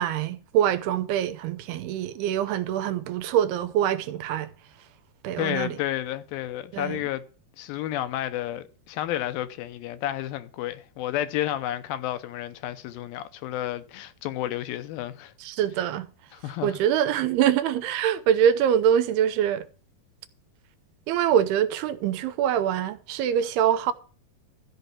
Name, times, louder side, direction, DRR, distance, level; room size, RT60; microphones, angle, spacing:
voice 1, 0.0-4.5 5.2-5.8 6.7-7.0 15.4-16.1 16.6-19.7 21.1-23.9, right 10 dB, 85° right, 2.8 m, -24 dB
voice 2, 5.4-7.2 7.6-15.3 16.3-16.8, left 13 dB, 80° left, 2.5 m, -31 dB
13.5 x 5.1 x 7.4 m
omnidirectional pair, 4.5 m